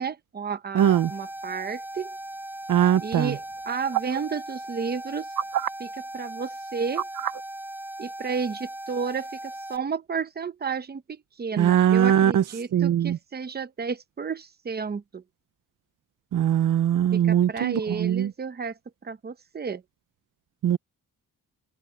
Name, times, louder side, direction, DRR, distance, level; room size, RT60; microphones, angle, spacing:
voice 1, 0.0-2.2 3.0-5.3 5.8-7.1 8.0-15.2 17.1-19.8, right 5 dB, 30° right, 0.9 m, -32 dB
voice 2, 0.7-1.1 2.7-3.3 11.6-12.4 12.7-13.2 16.3-18.3 20.6-20.8, right 10 dB, 70° right, 0.8 m, -21 dB
sound 1, 0.8-9.8, right 1 dB, 5° right, 3.1 m, -38 dB
sound 2, 3.9-4.2 5.4-5.7 6.9-7.4 8.4-8.5, right 11 dB, 85° right, 1.5 m, -27 dB
wide cardioid pair, 160°, 33 cm